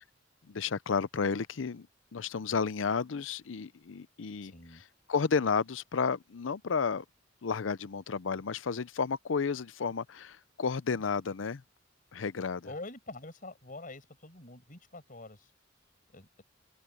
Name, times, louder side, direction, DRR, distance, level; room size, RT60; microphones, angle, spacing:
voice 1, 0.5-1.9 2.1-4.5 5.1-7.0 7.4-11.6 12.1-12.7, left 5 dB, 85° left, 0.6 m, -32 dB
voice 2, 4.4-4.8 12.6-15.5 16.1-16.4, left 2 dB, 45° left, 5.9 m, -46 dB
open air
head